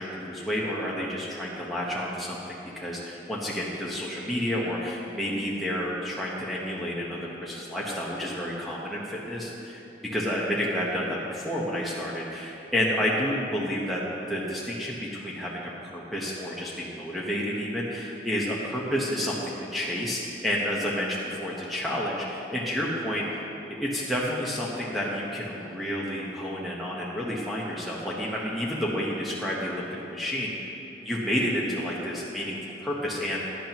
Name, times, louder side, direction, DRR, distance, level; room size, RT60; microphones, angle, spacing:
voice 1, 0.0-9.8 10.1-14.0 14.3-23.4 23.8-30.7 31.0-33.4, equal, ahead, -6 dB, 1.0 m, -30 dB
16.0 x 10.5 x 3.0 m, 2.9 s
head